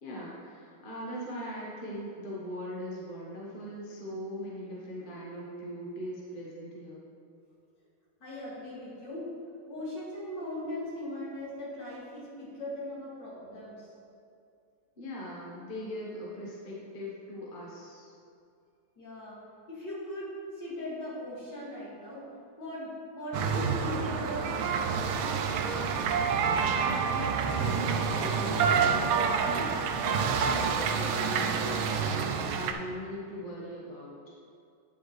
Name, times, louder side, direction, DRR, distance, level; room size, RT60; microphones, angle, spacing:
voice 1, 0.0-7.0 15.0-18.1 26.7-29.0 29.4-34.3, equal, 30° left, -5 dB, 1.1 m, -40 dB
voice 2, 8.2-9.3 9.7-13.9 19.0-19.4 19.7-22.3 22.6-24.6, left 1 dB, 55° left, -8 dB, 2.9 m, -39 dB
sound 1, 23.3-32.7, right 6 dB, 80° right, 1.4 m, -28 dB
9.8 x 7.0 x 3.2 m, 2.4 s
omnidirectional pair, 2.3 m